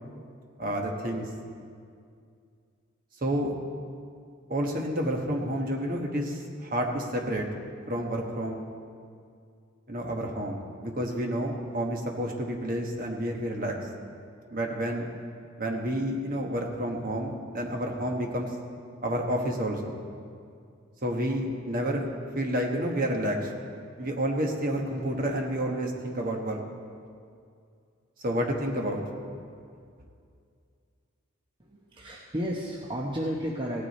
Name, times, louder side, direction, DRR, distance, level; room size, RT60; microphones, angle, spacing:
voice 1, 0.6-1.3 3.2-3.5 4.5-7.5 7.9-8.6 9.9-13.8 14.5-15.1 15.6-18.5 19.0-20.0 21.0-22.1 22.3-23.5 24.0-26.6 28.2-29.0, equal, 40° right, 1 dB, 1.3 m, -29 dB
voice 2, 31.6-33.8, equal, 25° right, -3 dB, 0.8 m, -32 dB
16.5 x 9.5 x 4.2 m, 2.3 s
head